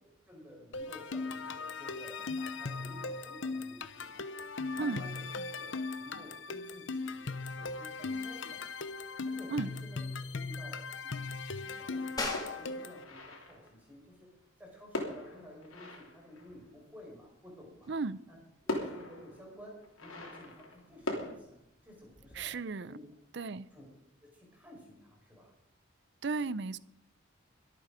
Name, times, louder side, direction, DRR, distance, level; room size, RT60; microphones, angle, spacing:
voice 1, 0.0-5.3 5.5-8.6 9.2-14.3 14.6-17.9 18.3-18.4 18.6-22.5 22.9-23.1 23.7-23.9 24.2-25.5, equal, 10° right, -2 dB, 5.4 m, -53 dB
sound 1, 0.7-13.0, left 3 dB, 65° left, 0.9 m, -39 dB
sound 2, 12.2-22.4, left 2 dB, 20° left, 2.1 m, -47 dB
sound 3, 12.3-13.8 14.9-16.9 18.1-18.2 18.7-21.3, left 1 dB, 90° left, 3.3 m, -41 dB
voice 2, 17.9-18.2 22.3-23.0 23.3-23.7 26.2-26.8, right 4 dB, 55° right, 18 dB, 0.5 m, -34 dB
23.0 x 8.6 x 5.1 m, 0.80 s
head